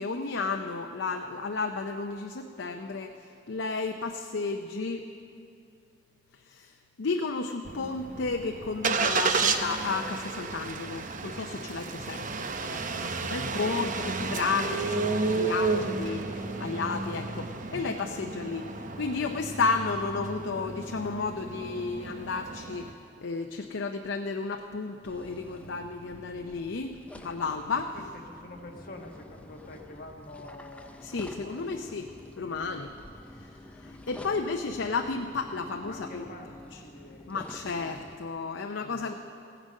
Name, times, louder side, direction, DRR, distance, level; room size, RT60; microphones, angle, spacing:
voice 1, 0.0-5.1 6.5-12.8 13.2-17.4 17.7-22.9 23.2-27.0 27.2-27.9 31.0-32.1 32.4-32.9 33.4-36.2 37.3-39.1, left 4 dB, 80° left, 5 dB, 0.6 m, -32 dB
Engine starting, 7.7-22.9, right 4 dB, 45° right, 0.7 m, -32 dB
voice 2, 12.9-13.6 17.3-17.6 28.1-31.9 32.6-33.4 35.9-37.3 38.6-39.1, left 2 dB, 50° left, 2 dB, 1.5 m, -48 dB
sound 1, 25.0-38.2, left 1 dB, 5° left, 0.6 m, -48 dB
15.5 x 10.0 x 6.4 m, 2.6 s
head